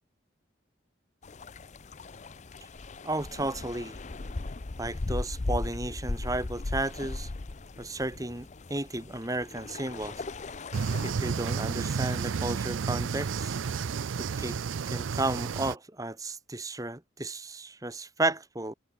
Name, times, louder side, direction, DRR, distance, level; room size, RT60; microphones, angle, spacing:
sound 1, 1.2-11.1, left 2 dB, 40° left, 0.6 m, -37 dB
voice 1, 3.0-4.0 4.8-7.3 7.8-10.2 11.0-13.6 14.2-14.6 14.9-18.7, right 2 dB, 20° right, 1.9 m, -33 dB
sound 2, 10.7-15.8, right 5 dB, 90° right, 0.5 m, -31 dB
head